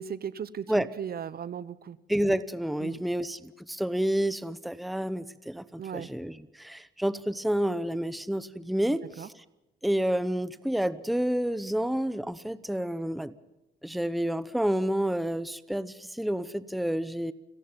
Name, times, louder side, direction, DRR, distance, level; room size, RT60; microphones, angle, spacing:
voice 1, 0.0-2.0 2.8-3.0 5.8-6.1 9.0-9.3, right 8 dB, 50° right, 18 dB, 0.9 m, -37 dB
voice 2, 2.1-9.3 9.8-13.3 13.8-17.3, equal, ahead, 16 dB, 0.8 m, -29 dB
29.0 x 11.0 x 8.9 m, 0.97 s
cardioid pair, 90°, 20 cm